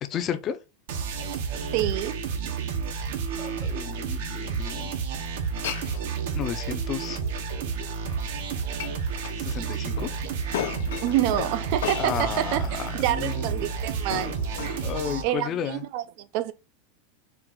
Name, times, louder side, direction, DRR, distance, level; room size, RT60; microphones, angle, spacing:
voice 1, 0.1-0.6 3.3-4.9 6.3-7.2 9.4-10.1 12.0-13.5 14.8-15.8, left 8 dB, 30° left, 0.6 m, -32 dB
sound 1, 0.9-15.2, right 5 dB, 75° right, 1.0 m, -31 dB
voice 2, 1.7-2.2 11.0-14.3 14.6-14.8 15.2-16.0 16.3-16.5, right 13 dB, 55° right, 0.5 m, -27 dB
Glass, 5.4-15.4, left 9 dB, 80° left, 0.7 m, -38 dB
4.5 x 2.5 x 3.8 m
supercardioid pair, 150°, 0 cm